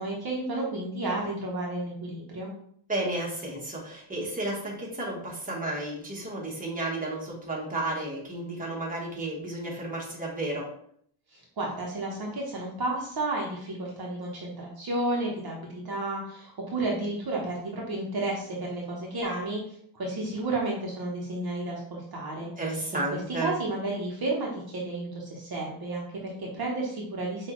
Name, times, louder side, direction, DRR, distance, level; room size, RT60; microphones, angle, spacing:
voice 1, 0.0-2.5 11.3-22.5 22.8-27.5, right 2 dB, 45° right, -2 dB, 1.1 m, -32 dB
voice 2, 2.9-10.7 22.4-23.5, right 2 dB, 15° right, -3 dB, 1.4 m, -32 dB
6.1 x 2.7 x 3.1 m, 0.65 s
cardioid pair, 115°, 49 cm